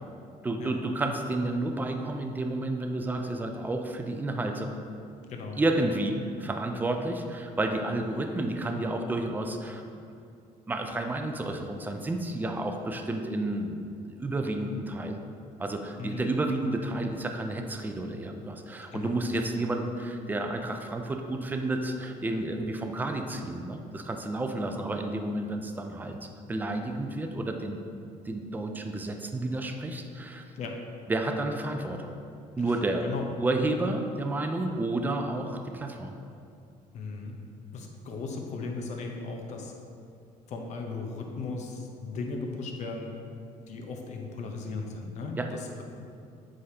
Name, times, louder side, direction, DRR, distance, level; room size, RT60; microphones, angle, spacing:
voice 1, 0.4-4.7 5.6-9.8 10.7-13.8 14.1-15.2 15.6-26.2 26.5-27.8 28.3-30.4 31.1-32.1 32.6-33.1 33.4-36.1 45.4-45.5, right 2 dB, 15° right, 4 dB, 0.4 m, -31 dB
voice 2, 5.3-5.6 16.0-16.3 18.9-19.4 30.6-30.7 32.7-32.8 33.0-33.3 36.9-37.4 37.7-39.7 40.5-43.1 43.7-45.8, left 3 dB, 55° left, 2 dB, 0.8 m, -37 dB
7.6 x 4.9 x 2.8 m, 2.5 s
cardioid pair, 140°, 14 cm